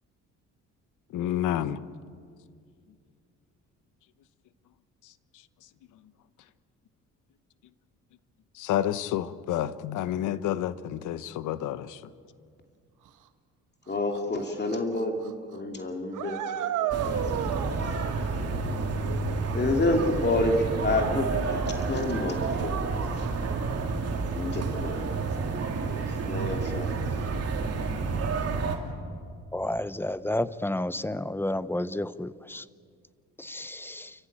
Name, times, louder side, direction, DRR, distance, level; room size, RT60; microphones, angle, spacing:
voice 1, 1.1-1.8 8.6-12.0, left 11 dB, 85° left, 14 dB, 1.0 m, -29 dB
voice 2, 13.9-17.2 19.5-21.6 21.9-22.8 24.4-25.3 25.8-26.0 26.3-26.9, left 2 dB, 35° left, 3 dB, 2.9 m, -29 dB
sound 1, 14.2-14.3 14.7-15.0 15.2-15.3 16.1-17.7, right 10 dB, 80° right, 1.3 m, -30 dB
sound 2, 16.9-28.8, right 4 dB, 55° right, 3.1 m, -30 dB
Keyboard (musical), 18.1-21.6, left 1 dB, 30° right, 7.5 m, -38 dB
voice 3, 29.5-32.6 33.4-34.1, left 1 dB, 5° left, 15 dB, 0.7 m, -31 dB
29.5 x 15.0 x 8.8 m, 2.2 s
cardioid pair, 90°, 30 cm